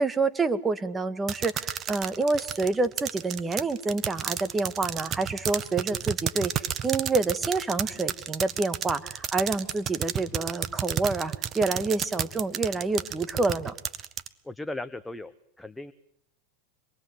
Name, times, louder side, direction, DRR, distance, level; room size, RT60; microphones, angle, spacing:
voice 1, 0.0-13.7, right 3 dB, 15° right, 11 dB, 1.9 m, -28 dB
sound 1, 1.3-14.3, right 9 dB, 35° right, 1.7 m, -31 dB
voice 2, 14.4-15.9, left 2 dB, 5° left, 10 dB, 1.2 m, -37 dB
26.5 x 23.0 x 8.0 m, 0.72 s
hypercardioid pair, 110°, 0 cm